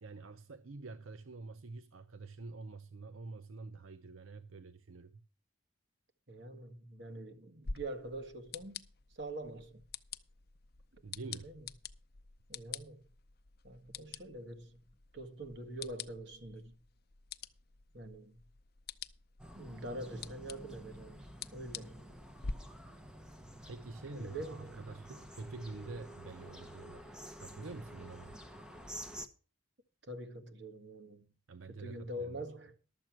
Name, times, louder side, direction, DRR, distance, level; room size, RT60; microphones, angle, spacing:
voice 1, 0.0-5.2 11.0-11.5 23.7-28.4 31.5-32.4, right 3 dB, 85° right, 0.7 m, -47 dB
voice 2, 6.3-8.9 9.1-9.9 10.9-11.0 11.4-11.7 12.5-13.1 13.6-16.9 17.9-18.4 19.5-21.3 21.5-22.1 24.1-24.8 30.0-31.3 31.7-32.8, right 1 dB, 55° right, 1.8 m, -45 dB
sound 1, 7.6-22.5, left 5 dB, 50° left, 0.6 m, -48 dB
sound 2, 19.4-29.3, equal, 5° right, 0.9 m, -50 dB
12.0 x 7.5 x 6.1 m
head